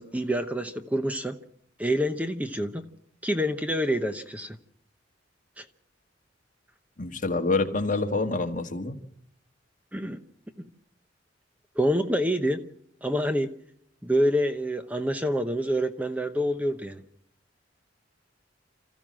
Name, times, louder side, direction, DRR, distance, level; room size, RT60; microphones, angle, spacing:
voice 1, 0.0-1.4 1.8-2.8 3.2-4.6 5.6-5.7 9.9-10.2 11.8-12.6 13.0-13.5 14.0-17.0, equal, 10° right, 8 dB, 0.9 m, -27 dB
voice 2, 7.0-9.0, left 3 dB, 45° left, 5 dB, 1.7 m, -27 dB
27.0 x 14.5 x 7.5 m, 0.72 s
head